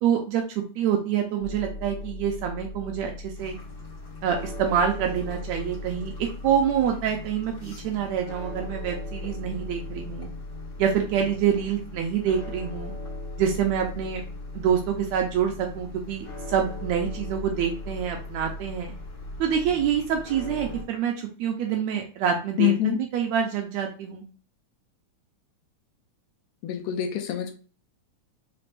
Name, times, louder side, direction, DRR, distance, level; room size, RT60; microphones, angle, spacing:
voice 1, 0.0-3.6 4.2-10.3 10.8-12.9 13.4-14.2 14.5-18.9 19.4-24.2, right 8 dB, 80° right, 2 dB, 1.8 m, -26 dB
sound 1, 1.4-20.8, left 2 dB, 20° left, 1.7 m, -38 dB
sound 2, 3.4-20.8, left 3 dB, 40° left, 1.2 m, -47 dB
voice 2, 22.6-23.0 26.6-27.6, left 12 dB, 80° left, 4 dB, 1.8 m, -25 dB
5.0 x 3.4 x 2.5 m, 0.37 s
omnidirectional pair, 3.3 m